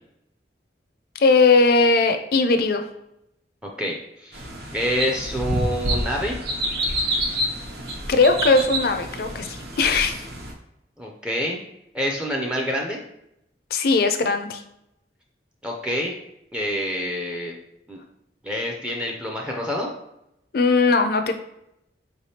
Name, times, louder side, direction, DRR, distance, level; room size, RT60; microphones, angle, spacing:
voice 1, 1.2-2.9 8.1-10.3 13.7-14.6 20.5-21.3, left 3 dB, 55° left, 8 dB, 0.4 m, -19 dB
voice 2, 3.8-4.4 4.7-6.4 11.0-11.6 11.9-13.0 15.6-16.2 16.5-17.5 17.9-18.0 18.4-19.9, equal, 5° right, -1 dB, 0.4 m, -27 dB
sound 1, 4.3-10.5, right 1 dB, 60° right, 0.8 m, -28 dB
4.6 x 3.3 x 2.7 m, 0.82 s
head